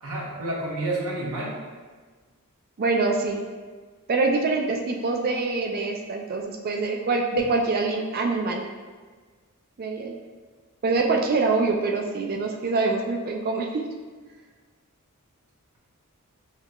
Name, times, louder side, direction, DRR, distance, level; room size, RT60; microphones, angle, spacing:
voice 1, 0.0-1.6, right 2 dB, 80° right, -3 dB, 0.9 m, -29 dB
voice 2, 2.8-3.4 4.1-8.7 9.8-10.1 10.8-13.8, right 3 dB, 45° right, 2 dB, 0.4 m, -25 dB
5.6 x 2.9 x 2.3 m, 1.4 s
head